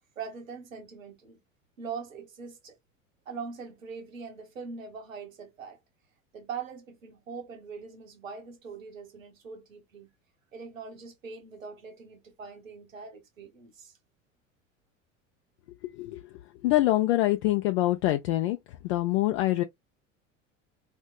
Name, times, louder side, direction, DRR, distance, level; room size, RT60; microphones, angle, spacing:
voice 1, 0.2-1.4 1.8-2.8 3.3-5.8 6.3-10.1 10.5-13.9, right 5 dB, 85° right, 1.1 m, -42 dB
voice 2, 16.6-18.6 18.8-19.6, left 16 dB, 60° left, 0.6 m, -25 dB
4.4 x 2.2 x 2.3 m
figure-of-eight pair, 75°, 39 cm